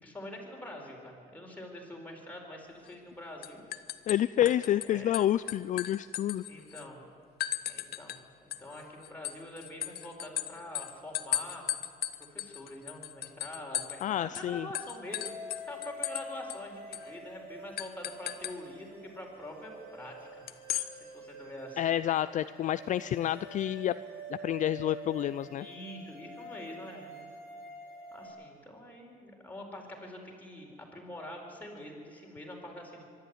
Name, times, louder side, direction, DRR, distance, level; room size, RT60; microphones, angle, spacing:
voice 1, 0.0-3.6 4.8-5.1 6.5-7.0 7.6-11.7 12.2-15.3 15.7-20.4 20.9-21.9 25.6-27.1 28.1-33.0, left 1 dB, 10° left, -1 dB, 4.4 m, -45 dB
sound 1, 2.9-3.1 3.4-4.9 5.1-6.8 7.4-8.2 8.5-14.1 14.3-14.5 14.7-16.2 16.5-16.6 16.9-17.1 17.8-18.6 20.5-20.9, left 12 dB, 65° left, 0.9 m, -36 dB
voice 2, 4.1-6.4 14.0-14.7 21.8-23.9 24.3-25.7, left 12 dB, 50° left, 14 dB, 0.4 m, -29 dB
sound 2, 15.0-28.3, right 1 dB, 55° right, 4.4 m, -47 dB
23.5 x 12.0 x 9.5 m, 2.3 s
cardioid pair, 110°, 17 cm